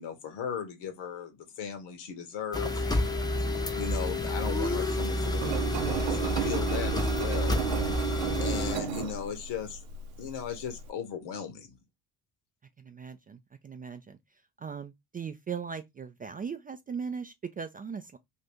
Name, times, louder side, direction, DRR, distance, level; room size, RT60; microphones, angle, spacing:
voice 1, 0.0-3.1 3.8-5.4 5.9-7.6 8.4-9.8 10.2-11.8, left 7 dB, 70° left, 1.1 m, -37 dB
sound 1, 2.5-8.8, left 1 dB, 10° left, 0.6 m, -29 dB
voice 2, 5.4-5.7 12.8-14.2 14.6-18.2, right 6 dB, 20° right, 0.3 m, -39 dB
Engine, 5.4-10.9, right 9 dB, 85° right, 0.6 m, -34 dB
2.7 x 2.5 x 3.3 m
hypercardioid pair, 60°, 43 cm